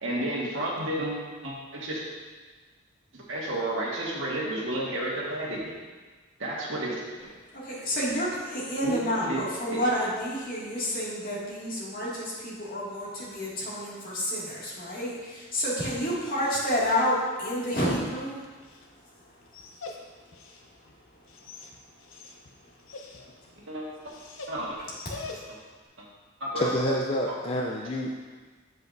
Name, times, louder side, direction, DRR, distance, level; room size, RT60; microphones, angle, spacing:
voice 1, 0.0-1.2 1.4-2.0 3.1-5.8 6.4-7.0 8.8-9.4 9.7-9.8 23.7-23.8 24.5-24.7 26.0-26.1 26.4-26.7, right 1 dB, 70° right, -4 dB, 1.6 m, -31 dB
voice 2, 7.5-18.3 19.0-19.1 25.1-25.4, equal, 45° left, -7 dB, 2.1 m, -29 dB
Dog, 17.5-25.8, left 3 dB, 75° left, 0.8 m, -46 dB
voice 3, 26.6-28.2, left 1 dB, 30° left, -1 dB, 0.4 m, -28 dB
8.2 x 7.2 x 2.6 m, 1.4 s
head